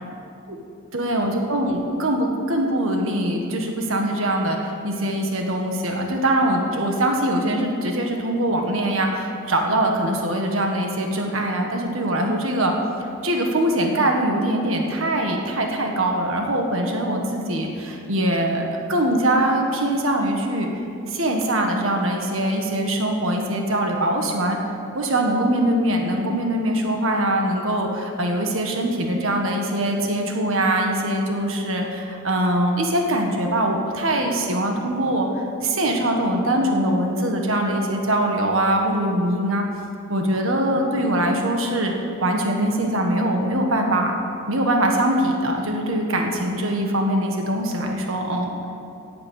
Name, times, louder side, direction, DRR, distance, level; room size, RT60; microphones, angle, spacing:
voice 1, 0.9-12.7 13.2-20.7 21.1-24.6 24.9-39.6 40.1-41.9 42.2-44.1 44.5-48.5, right 1 dB, 70° right, 2 dB, 1.6 m, -22 dB
17.5 x 8.8 x 6.5 m, 2.6 s
head